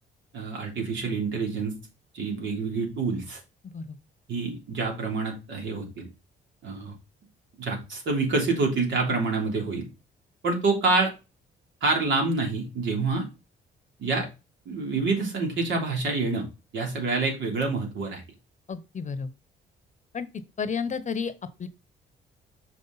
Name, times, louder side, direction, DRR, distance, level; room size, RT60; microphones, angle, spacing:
voice 1, 0.3-1.7 2.1-3.4 4.3-6.1 6.6-6.9 7.6-9.9 10.4-11.1 11.8-13.3 14.0-14.3 14.6-16.5 16.7-18.2, right 3 dB, 70° right, 3.4 m, -27 dB
voice 2, 18.7-19.3 20.1-20.3 20.6-21.3 21.6-21.7, left 6 dB, 40° left, 0.9 m, -31 dB
6.4 x 5.3 x 4.0 m
cardioid pair, 90°, 20 cm